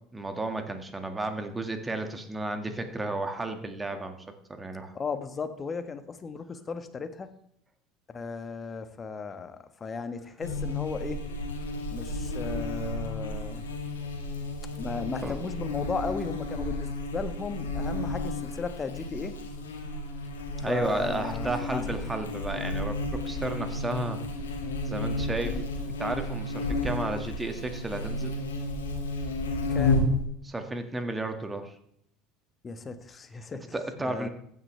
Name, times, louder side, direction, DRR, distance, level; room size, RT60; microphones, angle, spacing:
voice 1, 0.1-4.2 4.5-4.9 15.2-15.4 20.6-24.2 24.9-25.5 26.0-28.3 30.4-31.7 33.7-34.3, right 2 dB, 15° right, 6 dB, 2.0 m, -33 dB
voice 2, 4.9-7.3 8.1-11.2 11.9-13.6 14.8-19.3 20.6-21.8 25.4-25.6 29.7-30.0 32.6-33.6 34.0-34.3, left 5 dB, 30° left, 9 dB, 1.4 m, -36 dB
Buzz, 10.4-30.2, left 2 dB, 85° left, 1.8 m, -32 dB
15.0 x 9.7 x 3.4 m, 0.71 s
hypercardioid pair, 70°, 0 cm